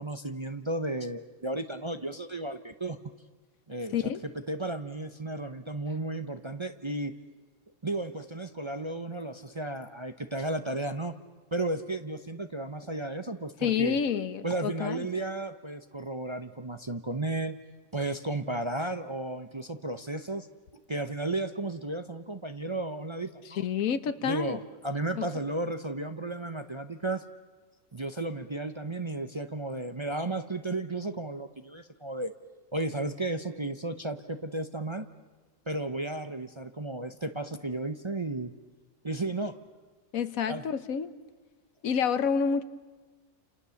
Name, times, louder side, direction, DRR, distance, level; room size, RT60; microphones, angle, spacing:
voice 1, 0.0-3.0 3.7-4.1 4.5-7.1 7.8-11.1 11.5-14.0 14.4-17.5 17.9-20.5 20.9-23.6 24.2-27.2 27.9-32.3 32.7-35.1 35.7-38.5 39.0-39.5 40.5-40.6, right 2 dB, 25° right, 8 dB, 0.7 m, -33 dB
voice 2, 13.6-15.1 23.5-24.6 25.2-25.3 40.1-41.1 41.8-42.6, left 7 dB, 75° left, 12 dB, 1.4 m, -28 dB
29.5 x 28.5 x 7.1 m, 1.4 s
omnidirectional pair, 1.5 m